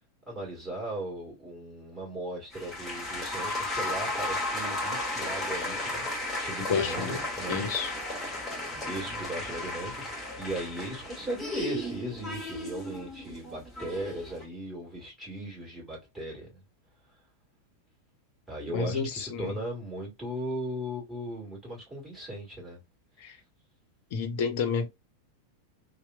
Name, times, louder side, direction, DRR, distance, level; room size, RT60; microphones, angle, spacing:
voice 1, 0.3-7.7 8.8-16.6 18.5-22.8 23.2-23.4, right 1 dB, 10° right, 1.6 m, -38 dB
sound 1, 2.5-14.4, left 1 dB, 10° left, 1.3 m, -34 dB
voice 2, 6.7-7.2 7.5-7.9 18.7-19.5 23.2-23.4 24.1-24.9, left 6 dB, 50° left, 0.5 m, -30 dB
2.8 x 2.0 x 2.2 m
figure-of-eight pair, 90°, 0 cm